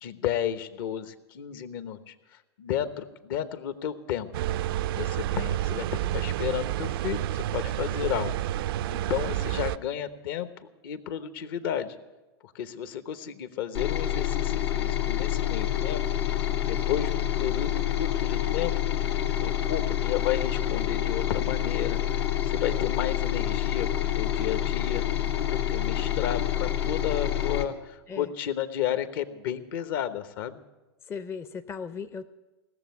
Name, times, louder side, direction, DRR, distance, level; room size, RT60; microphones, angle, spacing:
voice 1, 0.0-2.1 2.6-4.3 4.9-8.4 8.9-10.5 10.8-11.9 12.4-16.0 16.4-18.7 19.0-25.0 25.4-30.6, left 10 dB, 60° left, 11 dB, 1.1 m, -32 dB
sound 1, 4.3-9.8, right 12 dB, 60° right, 0.4 m, -29 dB
sound 2, 13.7-27.6, left 11 dB, 85° left, 1.7 m, -27 dB
voice 2, 31.1-32.3, left 6 dB, 20° left, 10 dB, 0.5 m, -37 dB
17.0 x 6.9 x 9.4 m, 1.1 s
hypercardioid pair, 120°, 13 cm